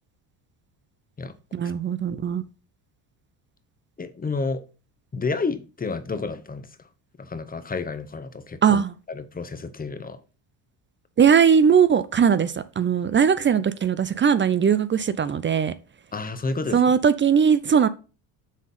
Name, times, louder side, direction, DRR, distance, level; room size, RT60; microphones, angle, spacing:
voice 1, 1.5-2.4 8.6-8.9 11.2-15.7 16.7-17.9, right 7 dB, 25° right, 0.4 m, -19 dB
voice 2, 4.0-4.6 5.1-6.9 7.2-8.8 9.1-10.2 16.1-17.0, left 4 dB, 20° left, 0.9 m, -30 dB
6.3 x 3.7 x 5.6 m
supercardioid pair, 80°, 46 cm